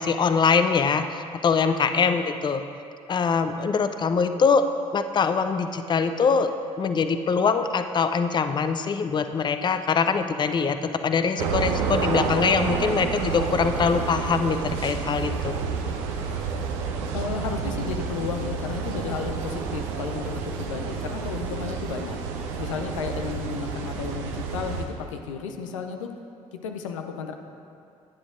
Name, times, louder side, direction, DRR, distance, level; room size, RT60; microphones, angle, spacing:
voice 1, 0.0-2.6 3.1-6.5 6.8-15.6, left 5 dB, 30° left, 9 dB, 0.5 m, -23 dB
sound 1, 11.4-24.8, right 5 dB, 70° right, 0.7 m, -29 dB
voice 2, 17.1-22.1 22.6-26.1 26.5-27.3, left 6 dB, 80° left, 5 dB, 0.5 m, -33 dB
11.5 x 9.6 x 2.5 m, 2.5 s
figure-of-eight pair, 50°, 16 cm